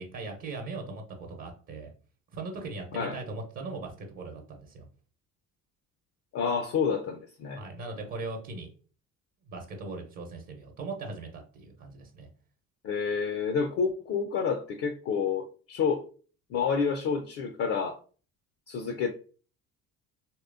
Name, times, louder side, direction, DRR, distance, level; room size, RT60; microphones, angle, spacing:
voice 1, 0.0-1.9 2.3-4.9 7.6-8.7 9.5-12.3, right 3 dB, 45° right, 2 dB, 0.9 m, -39 dB
voice 2, 6.3-7.6 12.8-16.0 16.5-18.0 18.7-19.1, left 6 dB, 35° left, 7 dB, 0.4 m, -29 dB
3.1 x 2.8 x 2.5 m, 0.39 s
figure-of-eight pair, 55°, 47 cm